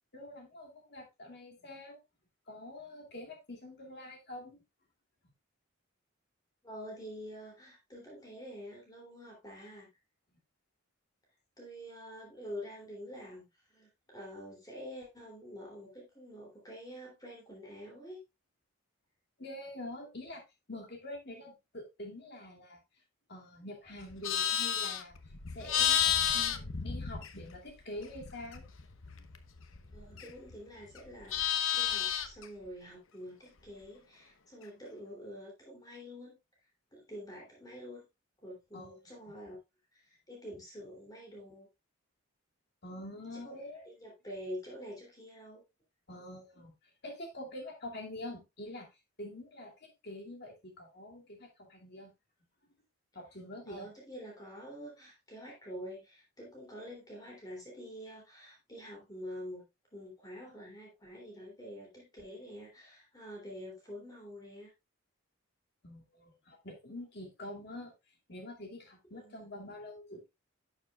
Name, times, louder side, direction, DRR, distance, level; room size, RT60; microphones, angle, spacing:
voice 1, 0.1-2.0 2.5-4.6 19.4-22.8 23.3-25.1 25.5-28.7 38.7-39.0 42.8-43.8 46.1-46.7 47.0-48.9 49.2-52.1 53.1-53.9 65.8-67.9 68.3-70.3, left 1 dB, 50° left, 2.4 m, -46 dB
voice 2, 6.6-9.9 11.6-18.2 29.9-36.3 36.9-38.1 38.4-39.6 39.9-41.7 43.3-43.5 43.8-45.6 53.7-59.6 59.9-64.7 69.1-69.5, equal, 15° left, 3.0 m, -47 dB
Livestock farm animals working animals, 24.0-27.7 28.0-30.5 30.9-32.4, left 9 dB, 70° left, 0.9 m, -32 dB
11.5 x 7.1 x 2.4 m
head